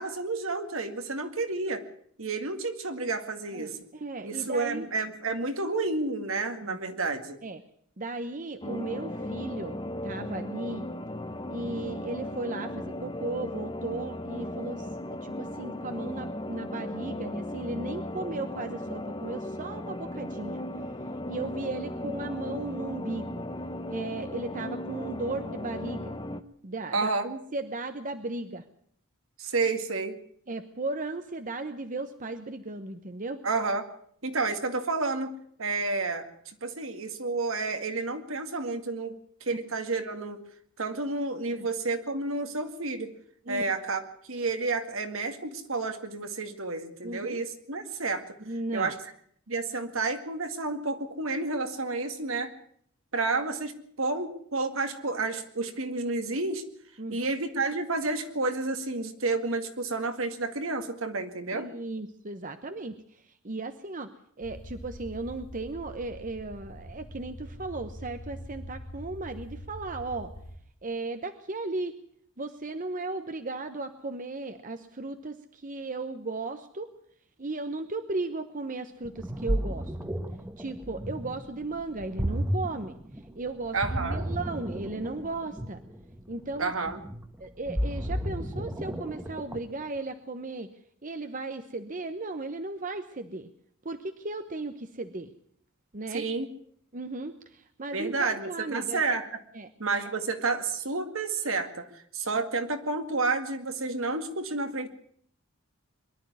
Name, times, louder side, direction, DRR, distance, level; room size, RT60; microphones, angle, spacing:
voice 1, 0.0-1.8 2.2-3.8 4.2-7.4 26.9-27.3 29.4-30.2 33.4-33.9 34.2-35.3 35.6-36.3 36.6-39.2 39.4-40.4 40.8-43.1 43.5-44.0 44.3-48.2 48.7-49.0 49.5-52.5 53.1-53.7 54.0-56.6 57.1-61.7 83.7-84.2 86.6-87.0 96.1-96.5 97.9-99.3 99.8-104.9, right 3 dB, 65° right, 7 dB, 2.1 m, -30 dB
voice 2, 3.5-4.9 6.6-6.8 7.4-7.6 8.0-10.8 11.5-14.9 15.2-20.6 21.3-23.4 23.9-26.1 26.6-28.6 30.5-33.4 39.5-39.6 41.5-41.7 43.4-43.7 47.0-47.4 48.5-48.9 57.0-57.3 61.5-63.0 63.4-64.1 64.4-70.3 70.8-71.9 72.4-76.9 77.4-79.9 80.6-83.0 83.4-85.8 86.3-86.7 87.4-90.7 91.0-93.5 93.8-95.3 95.9-96.3 96.9-99.0 99.5-99.7, right 2 dB, 40° right, 8 dB, 1.0 m, -36 dB
sound 1, 8.6-26.4, left 1 dB, 20° left, 0.9 m, -36 dB
sound 2, 64.4-70.6, equal, 65° left, 2.1 m, -44 dB
Ocean, 79.0-89.8, equal, 10° right, 1.3 m, -33 dB
23.0 x 12.0 x 9.6 m, 0.65 s
head